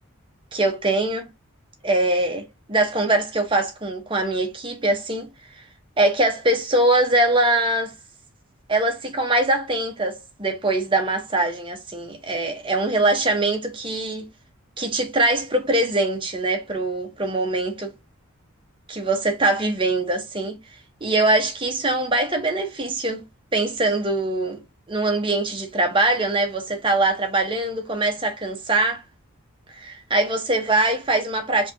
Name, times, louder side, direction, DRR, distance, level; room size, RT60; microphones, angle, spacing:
voice 1, 0.5-1.3 1.8-5.3 6.0-7.9 8.7-14.3 14.8-17.9 18.9-20.6 21.0-23.2 23.5-24.6 24.9-29.0 29.8-31.7, right 2 dB, 25° right, 0.8 m, -22 dB
4.6 x 2.8 x 2.6 m
head